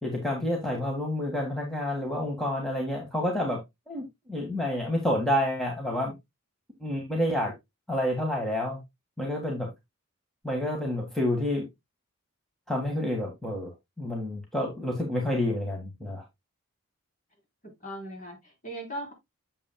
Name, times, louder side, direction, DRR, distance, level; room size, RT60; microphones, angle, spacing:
voice 1, 0.0-3.6 3.9-6.1 6.8-7.5 7.9-8.8 9.2-9.7 10.4-11.7 12.7-16.2, left 1 dB, ahead, 1.7 m, -29 dB
voice 2, 17.6-19.1, right 1 dB, 35° left, 4.2 m, -39 dB
8.6 x 7.2 x 2.2 m
head